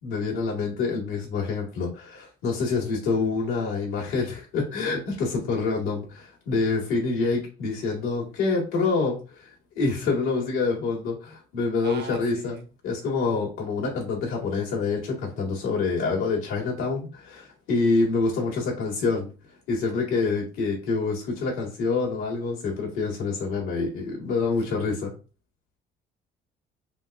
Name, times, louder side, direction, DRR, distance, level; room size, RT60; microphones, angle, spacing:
voice 1, 0.0-12.6 12.8-19.3 19.7-25.1, left 4 dB, 75° left, -2 dB, 2.0 m, -26 dB
voice 2, 11.8-12.7 24.7-24.8, right 5 dB, 55° right, 5 dB, 1.0 m, -40 dB
5.0 x 2.2 x 2.6 m, 0.33 s
supercardioid pair, 70°, 21 cm